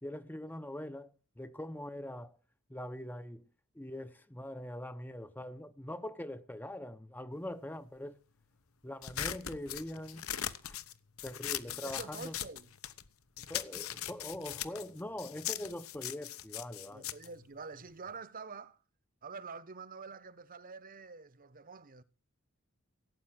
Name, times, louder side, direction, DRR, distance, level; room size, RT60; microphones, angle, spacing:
voice 1, 0.0-2.4 2.7-3.5 3.7-8.2 8.8-10.3 10.6-10.7 11.2-12.4 13.5-17.1, left 1 dB, 10° left, 0.6 m, -43 dB
sound 1, 9.0-13.1 13.4-18.2, left 11 dB, 75° left, 1.0 m, -40 dB
voice 2, 11.8-12.7 16.9-18.8 19.2-22.0, right 4 dB, 40° right, 1.0 m, -47 dB
17.0 x 8.8 x 7.6 m
head